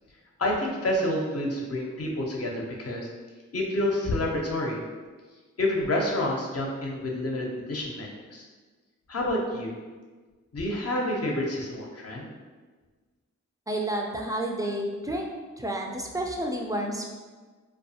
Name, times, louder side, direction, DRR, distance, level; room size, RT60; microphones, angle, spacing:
voice 1, 0.4-3.1 3.5-4.8 5.6-8.5 9.1-9.7 10.5-12.3, left 1 dB, 50° left, -1 dB, 0.6 m, -28 dB
voice 2, 13.7-17.1, right 1 dB, 10° right, 1 dB, 0.4 m, -30 dB
2.4 x 2.3 x 2.7 m, 1.4 s
cardioid pair, 45°, 31 cm